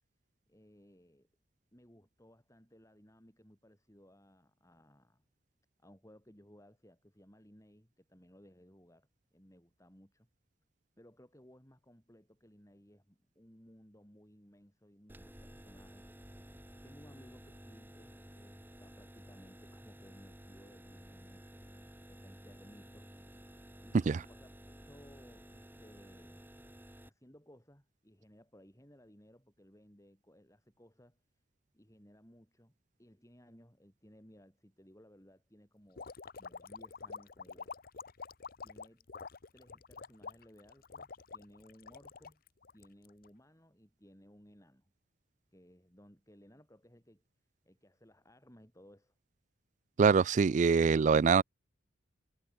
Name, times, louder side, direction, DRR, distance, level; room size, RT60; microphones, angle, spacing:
voice 1, 0.5-1.3 1.7-5.2 5.8-10.3 11.0-16.1 16.8-21.6 22.1-23.1 23.8-26.4 27.0-31.2 31.7-32.7 33.0-37.7 38.6-39.1 39.5-42.4 42.7-44.9 45.5-47.2 47.6-49.1, equal, 15° left, 6.5 m, -60 dB
sound 1, 15.1-27.1, equal, 10° right, 3.8 m, -53 dB
sound 2, 36.0-43.3, left 5 dB, 50° left, 0.8 m, -47 dB
voice 2, 50.0-51.4, right 5 dB, 40° right, 0.3 m, -24 dB
head